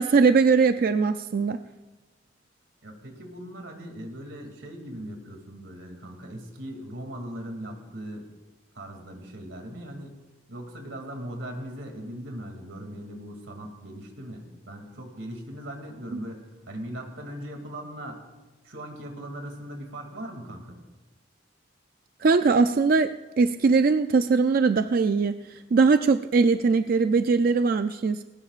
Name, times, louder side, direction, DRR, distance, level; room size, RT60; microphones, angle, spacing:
voice 1, 0.0-1.6 22.2-25.4 25.7-28.2, right 4 dB, 50° right, 9 dB, 0.4 m, -21 dB
voice 2, 2.8-8.3 8.7-10.1 10.5-18.2 18.6-20.8, right 1 dB, 80° right, 3 dB, 2.5 m, -39 dB
20.0 x 18.5 x 2.5 m, 1.2 s
head